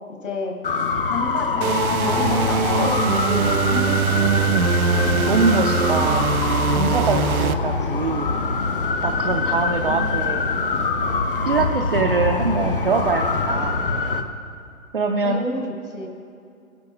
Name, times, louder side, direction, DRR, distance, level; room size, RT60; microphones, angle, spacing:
voice 1, 0.1-0.6 1.1-3.0 3.2-4.3 9.1-9.2 9.9-10.1 15.2-16.1, left 2 dB, 55° left, 3 dB, 1.5 m, -30 dB
sound 1, 0.6-14.2, left 4 dB, 40° left, 0.6 m, -24 dB
sound 2, 1.6-7.5, right 6 dB, 75° right, 0.7 m, -22 dB
voice 2, 5.3-6.4 6.7-8.4 9.0-10.4 11.5-13.8 14.9-15.4, right 4 dB, 40° right, 2 dB, 0.5 m, -23 dB
16.0 x 9.6 x 3.7 m, 2.6 s
hypercardioid pair, 165°, 44 cm